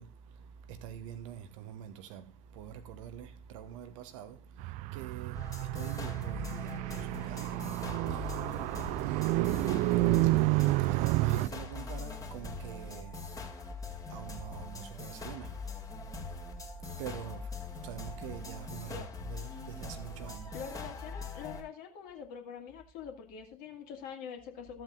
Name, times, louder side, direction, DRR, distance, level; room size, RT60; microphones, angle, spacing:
voice 1, 0.0-20.6, right 9 dB, 55° right, 1.0 m, -46 dB
Car, 4.6-11.5, right 20 dB, 40° right, 0.4 m, -30 dB
sound 1, 5.3-21.6, left 3 dB, 15° left, 2.2 m, -42 dB
voice 2, 20.5-24.8, left 7 dB, 50° left, 2.2 m, -44 dB
14.5 x 7.7 x 2.6 m
figure-of-eight pair, 70°, 19 cm